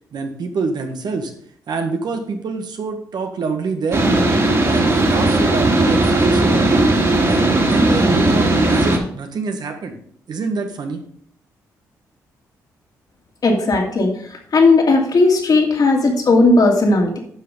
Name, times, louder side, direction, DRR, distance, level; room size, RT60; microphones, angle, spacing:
voice 1, 0.1-1.3 1.7-4.0 4.6-6.9 7.2-10.0 10.3-11.0, right 4 dB, 65° right, 5 dB, 1.6 m, -25 dB
sound 1, 3.9-9.0, right 2 dB, 40° right, 2.9 m, -16 dB
voice 2, 13.4-14.1 14.5-17.2, left 3 dB, 55° left, 1 dB, 2.6 m, -15 dB
9.5 x 6.0 x 5.1 m, 0.63 s
hypercardioid pair, 45°, 8 cm